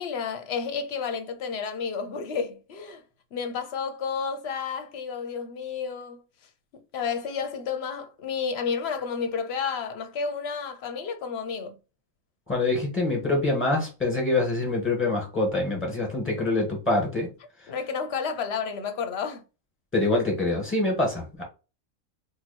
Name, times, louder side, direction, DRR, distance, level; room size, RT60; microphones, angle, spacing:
voice 1, 0.0-3.0 3.3-6.2 6.7-11.8 17.7-19.4, left 6 dB, 60° left, 0.8 m, -31 dB
voice 2, 12.5-17.3 17.6-17.7 19.9-21.4, left 2 dB, 10° left, 1.5 m, -25 dB
2.9 x 2.7 x 4.1 m
omnidirectional pair, 1.4 m